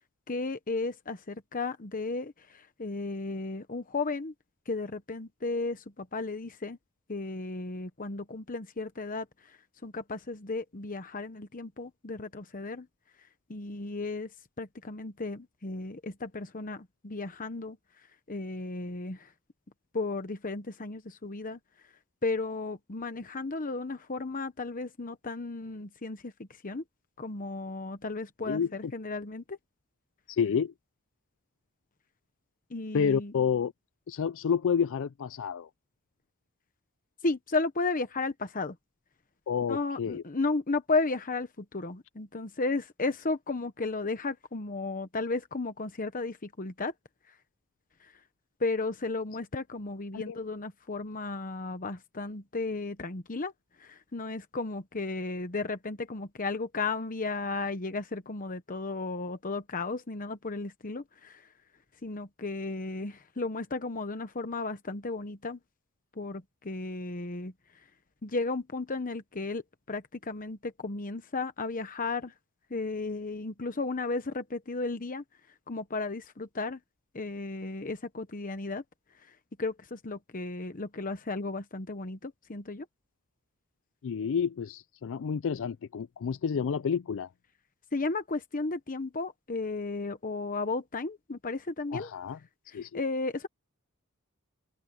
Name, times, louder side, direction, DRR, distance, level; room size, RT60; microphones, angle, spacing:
voice 1, 0.3-4.3 4.7-6.8 7.1-12.9 13.5-14.3 14.6-17.8 18.3-19.3 19.9-21.6 22.2-26.3 26.6-26.8 27.2-29.6 32.7-33.3 37.2-38.8 39.7-46.9 47.3-47.4 48.0-48.1 48.6-53.5 53.8-61.5 62.0-65.6 66.2-67.5 68.2-69.6 69.9-72.3 72.7-75.2 75.7-76.8 77.1-78.8 79.2-79.3 79.6-82.9 87.9-92.1 92.7-93.5, left 3 dB, 40° left, 1.0 m, -34 dB
voice 2, 28.4-28.9 30.3-30.7 32.9-33.7 34.1-35.7 39.5-40.2 50.1-50.4 84.0-87.3 91.9-92.4 92.7-92.9, left 6 dB, 60° left, 0.4 m, -29 dB
open air
head